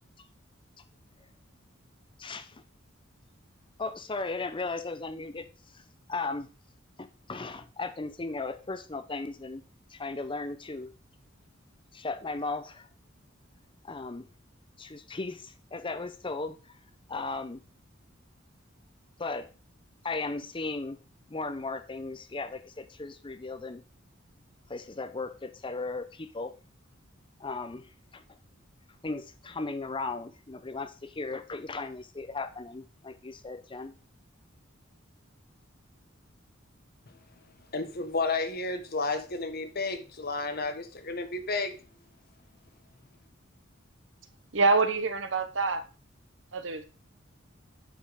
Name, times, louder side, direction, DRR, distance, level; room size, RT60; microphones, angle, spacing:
voice 1, 2.2-2.6 3.8-5.5 5.7-5.8 6.1-6.5 7.0-9.6 9.9-10.9 11.9-12.9 13.8-14.3 14.8-16.6 17.1-17.6 19.2-19.5 20.0-21.0 21.3-23.8 24.7-26.5 27.4-28.4 29.0-33.9, left 3 dB, 25° left, 0.6 m, -36 dB
voice 2, 37.7-41.8, left 3 dB, 50° left, 1.4 m, -32 dB
voice 3, 44.5-45.8 46.5-46.8, right 3 dB, 65° right, 1.2 m, -25 dB
8.8 x 5.2 x 5.1 m
head